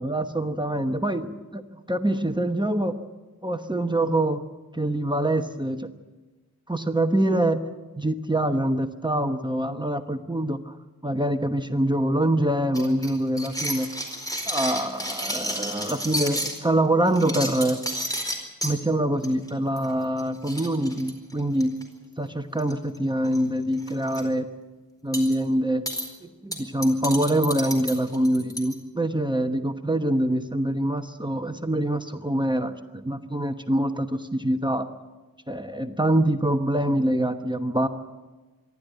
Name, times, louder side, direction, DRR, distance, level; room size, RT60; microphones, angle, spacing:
voice 1, 0.0-1.2 1.9-3.0 3.4-4.4 4.7-5.9 6.7-7.6 8.0-10.8 11.0-13.9 14.5-17.8 18.6-21.7 22.2-24.5 25.0-25.8 26.2-34.9 35.5-37.9, right 1 dB, 15° right, 6 dB, 1.1 m, -25 dB
sound 1, 12.7-16.6 17.1-18.7 19.2-19.5 19.8-19.9 20.2-20.3 20.5-21.8 22.6-23.0 23.2-23.4 23.8-24.2 25.1-25.3 25.9-26.1 26.5-28.7, equal, 10° left, 4.5 m, -31 dB
25.5 x 12.0 x 9.2 m, 1.2 s
wide cardioid pair, 75°, 36 cm